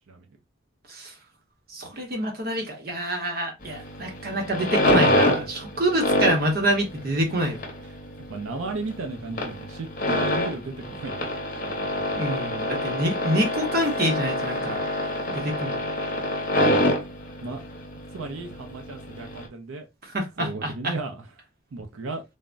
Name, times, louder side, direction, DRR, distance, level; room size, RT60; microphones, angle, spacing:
voice 1, 1.7-7.6 12.2-14.8 15.3-15.9 20.1-20.9, right 1 dB, 50° right, 0.8 m, -26 dB
sound 1, 3.6-19.5, left 1 dB, 45° left, 0.8 m, -26 dB
voice 2, 8.3-11.3 11.6-12.3 17.4-17.6 18.1-19.9 20.4-21.3 21.7-22.2, right 3 dB, 85° right, 0.5 m, -35 dB
3.3 x 2.0 x 2.4 m
head